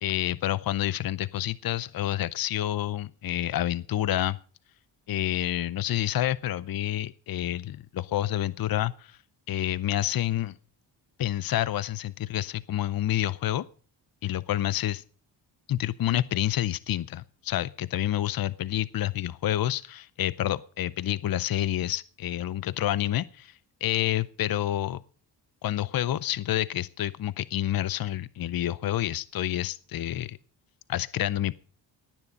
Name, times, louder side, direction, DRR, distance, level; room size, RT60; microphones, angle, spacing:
voice 1, 0.0-4.4 5.1-9.2 9.5-10.6 11.2-13.7 14.2-15.0 15.7-25.0 25.6-30.4 30.9-31.5, left 13 dB, 55° left, 18 dB, 0.6 m, -28 dB
18.0 x 9.8 x 5.3 m, 0.41 s
cardioid pair, 95°, 44 cm